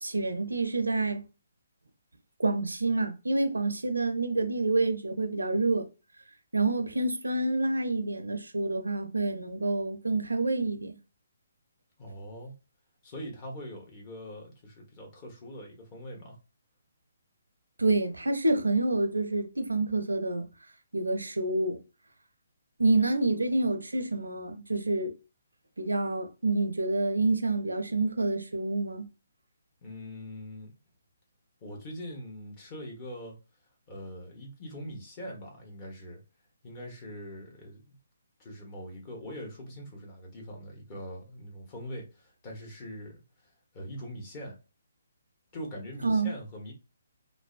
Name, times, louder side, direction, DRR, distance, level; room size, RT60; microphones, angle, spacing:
voice 1, 0.0-1.3 2.4-5.9 6.5-11.0 17.8-20.5 20.9-21.8 22.8-25.1 25.8-29.1 46.0-46.3, right 2 dB, 85° right, 0.5 m, -28 dB
voice 2, 12.0-12.5 13.0-16.4 29.8-30.8 31.6-33.4 33.9-36.2 36.6-38.0 38.4-44.6 45.5-46.7, equal, 30° left, 1.1 m, -42 dB
2.6 x 2.1 x 2.4 m
figure-of-eight pair, 140°, 0 cm